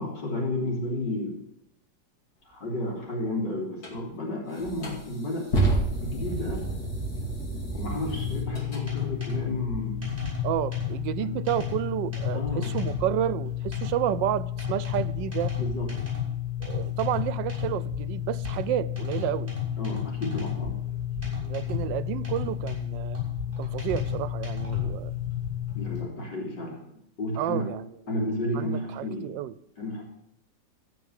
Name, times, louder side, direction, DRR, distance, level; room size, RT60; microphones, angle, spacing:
voice 1, 0.0-1.4 2.5-5.5 6.0-6.7 7.7-10.1 11.2-11.3 12.3-12.8 15.6-16.1 19.8-20.8 25.8-26.8 27.2-27.7 28.1-29.3 29.8-30.0, left 1 dB, 75° left, -2 dB, 4.0 m, -32 dB
sound 1, 3.8-4.0 4.6-8.8, right 2 dB, 60° left, 3.0 m, -29 dB
sound 2, 8.1-26.0, left 9 dB, 20° right, 7.1 m, -31 dB
voice 2, 10.4-15.6 16.6-19.5 21.5-23.2 23.6-25.1 27.4-27.9 28.5-29.5, right 12 dB, 85° right, 17 dB, 1.3 m, -30 dB
15.5 x 5.9 x 8.1 m, 0.81 s
omnidirectional pair, 1.9 m